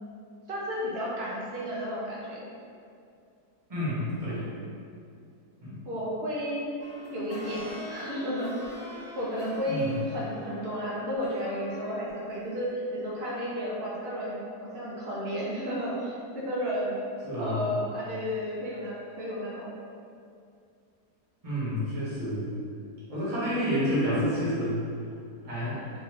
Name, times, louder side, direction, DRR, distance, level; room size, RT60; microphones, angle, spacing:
voice 1, 0.5-2.5 5.9-6.6 7.1-8.7 9.2-16.9 17.4-19.7, equal, 55° right, -6 dB, 0.7 m, -32 dB
voice 2, 3.7-4.5 5.6-5.8 9.7-10.0 17.2-17.8 21.4-22.5 23.1-24.8 25.4-25.8, equal, 25° right, -10 dB, 1.1 m, -29 dB
sound 1, 6.8-12.1 12.6-12.7, equal, 80° left, 1.2 m, -45 dB
3.9 x 2.6 x 3.1 m, 2.4 s
omnidirectional pair, 1.7 m